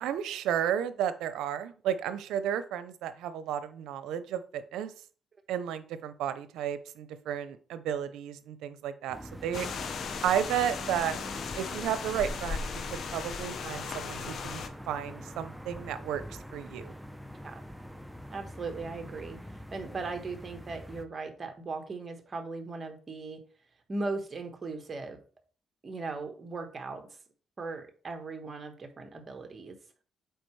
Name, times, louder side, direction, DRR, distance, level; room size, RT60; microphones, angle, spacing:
voice 1, 0.0-4.9 5.5-9.7 10.2-11.2 11.6-16.2 16.5-16.9, right 9 dB, 85° right, 12 dB, 0.6 m, -33 dB
sound 1, 9.1-21.1, equal, ahead, 0.6 m, -45 dB
sound 2, 9.5-14.7, left 5 dB, 60° left, 0.8 m, -37 dB
voice 2, 18.3-23.4 23.9-25.2 25.8-27.2 27.6-29.8, right 3 dB, 35° right, 5 dB, 1.4 m, -38 dB
7.9 x 4.6 x 3.2 m, 0.41 s
cardioid pair, 90°, 0 cm